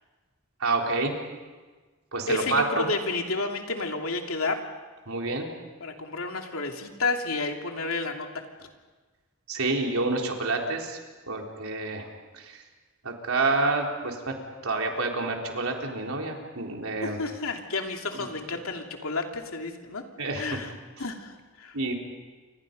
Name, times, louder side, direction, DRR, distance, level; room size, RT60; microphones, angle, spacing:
voice 1, 0.6-1.1 2.1-2.9 5.1-5.5 9.5-11.0 11.3-12.1 12.3-12.6 13.0-14.4 14.6-17.2 18.1-18.2 20.2-20.5 21.7-21.9, right 3 dB, 90° right, 1 dB, 3.9 m, -28 dB
voice 2, 2.3-4.6 5.8-8.3 17.0-20.0 20.3-20.7 21.0-21.9, left 3 dB, 90° left, 3 dB, 2.8 m, -31 dB
29.0 x 26.5 x 5.4 m, 1.3 s
head